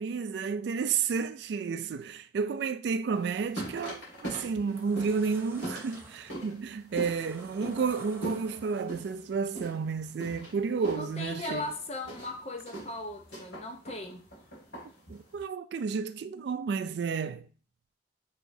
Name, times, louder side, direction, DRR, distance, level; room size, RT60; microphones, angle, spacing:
voice 1, 0.0-11.7 15.1-17.5, right 5 dB, 65° right, 0.3 m, -31 dB
sound 1, 3.1-15.4, right 1 dB, 80° left, 2.0 m, -42 dB
sound 2, 4.6-9.2, right 2 dB, 15° right, 0.6 m, -51 dB
voice 2, 10.9-14.2, left 2 dB, 35° left, 0.7 m, -38 dB
5.0 x 3.6 x 2.6 m
head